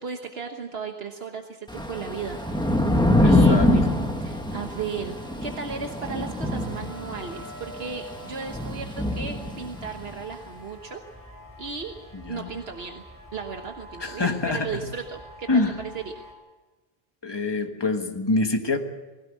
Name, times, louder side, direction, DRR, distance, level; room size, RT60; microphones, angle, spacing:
voice 1, 0.0-2.9 3.2-11.0 11.6-11.9 12.3-13.0 13.3-15.6 15.9-16.1, right 5 dB, 75° right, 3 dB, 1.5 m, -35 dB
Thunder / Rain, 1.7-10.1, left 1 dB, 5° left, 1.5 m, -24 dB
sound 1, 2.2-16.3, equal, 20° right, 4.8 m, -46 dB
voice 2, 3.2-3.7 12.3-12.5 14.0-14.7 15.5-15.8 17.2-18.8, left 3 dB, 25° left, 5 dB, 1.5 m, -25 dB
20.5 x 16.5 x 8.4 m, 1.2 s
omnidirectional pair, 1.1 m